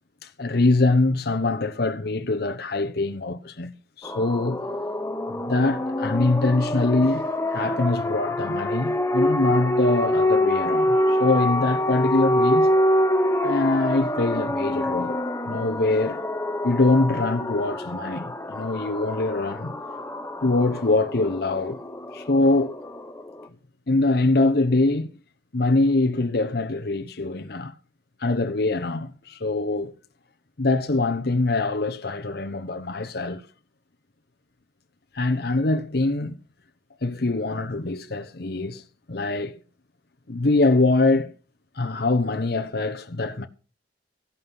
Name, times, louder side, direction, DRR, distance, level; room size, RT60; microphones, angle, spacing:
voice 1, 0.2-3.7 4.0-4.6 5.3-12.7 13.4-15.2 15.5-16.2 16.6-19.7 20.4-21.8 22.1-22.8 23.9-25.1 25.5-27.7 28.2-29.9 30.6-33.5 35.1-36.3 37.0-39.6 40.3-41.3 41.7-43.5, left 2 dB, 60° left, 0.9 m, -23 dB
sound 1, 4.0-23.5, left 1 dB, 15° left, 1.1 m, -26 dB
15.5 x 11.0 x 5.6 m
head